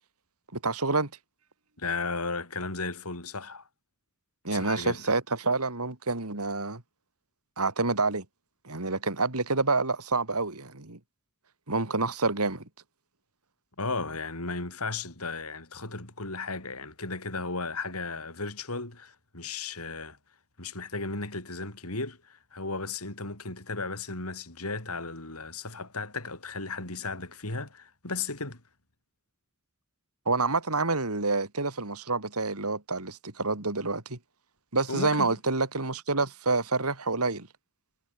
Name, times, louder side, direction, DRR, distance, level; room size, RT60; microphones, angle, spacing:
voice 1, 0.5-1.1 4.4-6.8 7.6-8.2 8.6-11.0 11.7-12.6 30.3-34.2 34.7-37.5, right 3 dB, 85° right, 3.3 m, -28 dB
voice 2, 1.8-3.7 4.5-5.0 13.8-20.2 20.6-28.6 34.9-35.4, left 3 dB, 80° left, 5.4 m, -35 dB
head